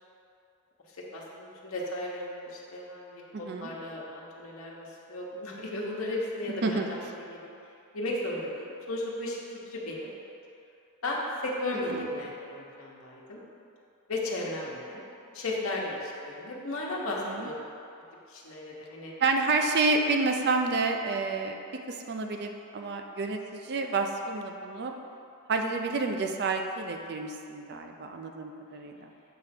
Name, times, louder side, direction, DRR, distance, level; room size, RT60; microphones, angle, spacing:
voice 1, 1.1-7.0 7.3-7.5 7.9-10.1 11.0-13.4 14.1-15.0 15.3-17.7 18.3-19.1, left 1 dB, 65° left, -4 dB, 1.1 m, -35 dB
voice 2, 3.3-3.7 6.6-7.1 11.9-12.1 17.2-17.5 19.2-21.6 21.9-24.9 25.5-29.1, right 3 dB, 45° right, 4 dB, 0.4 m, -29 dB
7.5 x 3.3 x 5.8 m, 2.6 s
head